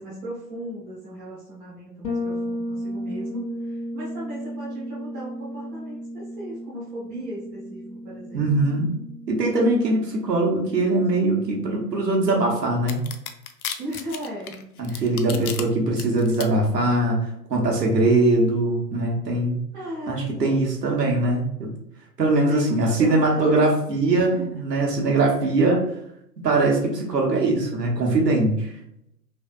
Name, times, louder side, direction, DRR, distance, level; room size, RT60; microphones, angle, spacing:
voice 1, 0.0-8.7 13.8-15.4 19.7-20.7 22.5-23.7 24.1-24.5, right 1 dB, 10° right, -7 dB, 0.4 m, -37 dB
Bass guitar, 2.0-11.7, equal, 80° left, 1.0 m, -34 dB
voice 2, 8.3-9.0 9.3-13.0 14.8-17.2 17.5-19.6 20.1-21.7 22.2-25.8 26.4-28.7, right 2 dB, 80° right, -1 dB, 1.1 m, -21 dB
sound 1, 12.9-15.6 16.0-16.5, left 8 dB, 65° left, 0.5 m, -33 dB
3.3 x 2.7 x 2.3 m, 0.76 s
figure-of-eight pair, 115°, 49 cm